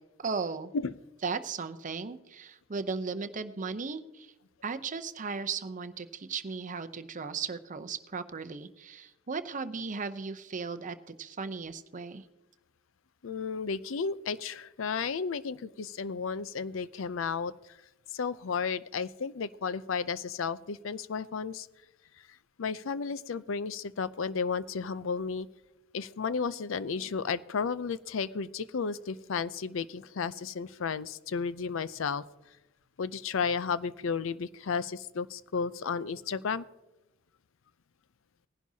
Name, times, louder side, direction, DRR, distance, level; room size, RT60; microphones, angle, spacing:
voice 1, 0.2-0.7 1.2-4.3 4.6-12.2, right 5 dB, 40° right, 11 dB, 0.7 m, -36 dB
voice 2, 13.2-17.8 18.1-21.7 22.6-25.5 25.9-32.2 33.0-36.7, left 5 dB, 70° left, 16 dB, 0.5 m, -33 dB
19.0 x 11.0 x 2.8 m, 1.0 s
head